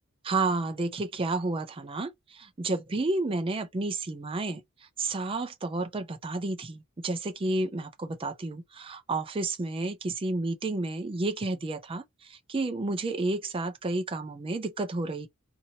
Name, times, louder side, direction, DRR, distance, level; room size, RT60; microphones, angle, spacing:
voice 1, 0.2-4.6 5.0-15.3, right 2 dB, 25° right, 0.4 m, -31 dB
2.8 x 2.7 x 2.7 m
head